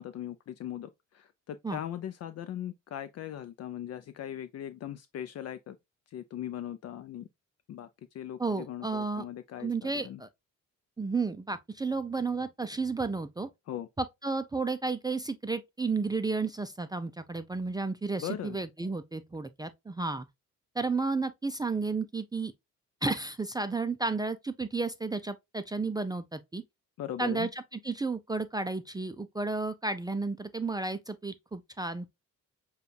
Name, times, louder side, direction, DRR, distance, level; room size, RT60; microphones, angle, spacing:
voice 1, 0.0-5.8 6.1-7.3 7.7-7.9 8.1-10.2 13.7-13.9 18.2-18.6 27.0-27.5, left 11 dB, 55° left, 0.5 m, -39 dB
voice 2, 8.4-9.3 9.6-10.3 11.0-13.5 14.0-20.3 20.7-22.5 23.0-26.6 27.2-32.1, right 3 dB, 15° right, 0.4 m, -32 dB
6.7 x 2.4 x 2.6 m
cardioid pair, 90°, 30 cm